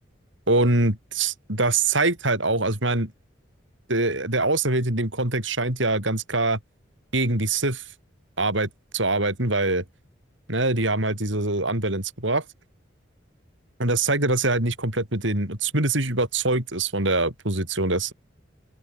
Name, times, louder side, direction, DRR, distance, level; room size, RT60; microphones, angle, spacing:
voice 1, 0.5-3.1 3.9-6.6 7.1-7.8 8.4-9.8 10.5-12.4 13.8-18.1, right 2 dB, 75° right, 7.2 m, -24 dB
open air
head